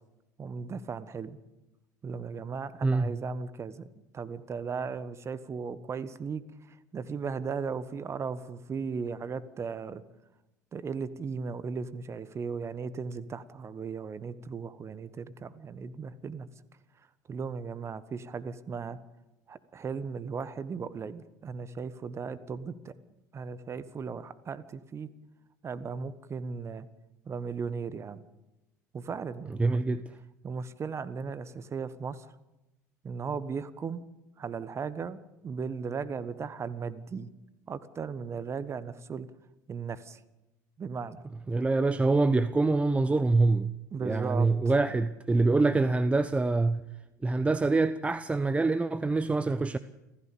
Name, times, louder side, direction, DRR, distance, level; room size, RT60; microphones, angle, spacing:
voice 1, 0.4-1.4 2.0-3.9 4.1-10.0 10.7-16.5 17.3-19.0 19.5-22.9 23.3-25.1 25.6-26.9 27.2-28.2 28.9-29.8 30.4-32.3 33.0-34.0 34.4-35.2 35.4-37.3 37.7-39.3 39.7-40.2 40.8-41.2 43.9-44.5, right 5 dB, 30° right, 1.3 m, -36 dB
voice 2, 29.6-30.0 41.5-43.8 44.0-46.8 47.2-49.8, right 3 dB, 15° right, 0.8 m, -25 dB
29.0 x 15.0 x 7.0 m
figure-of-eight pair, 70°, 10 cm